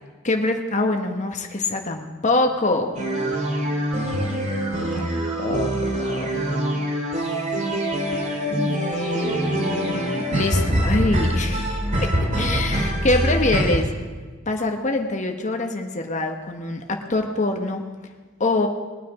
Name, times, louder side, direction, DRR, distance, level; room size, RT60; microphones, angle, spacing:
voice 1, 0.2-2.9 4.8-6.3 8.5-11.8 12.4-13.9 14.5-17.8 18.4-18.7, left 2 dB, 35° left, 4 dB, 1.2 m, -25 dB
sound 1, 2.9-13.8, right 1 dB, 35° right, 2.1 m, -24 dB
20.5 x 9.3 x 4.9 m, 1.4 s
head